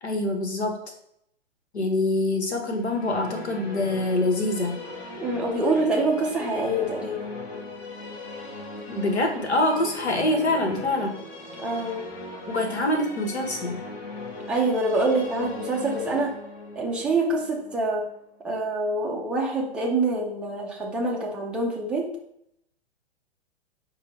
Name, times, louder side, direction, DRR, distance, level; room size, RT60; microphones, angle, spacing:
voice 1, 0.0-0.8 1.7-4.8 8.9-11.2 12.5-13.8, left 2 dB, 80° left, 3 dB, 1.2 m, -25 dB
sound 1, 2.7-18.7, left 2 dB, 50° left, 1.2 m, -39 dB
voice 2, 5.2-7.3 11.6-12.0 14.5-16.4 16.7-18.1 18.4-22.1, right 2 dB, 5° right, -2 dB, 0.4 m, -25 dB
4.8 x 2.2 x 4.5 m, 0.73 s
figure-of-eight pair, 120°, 32 cm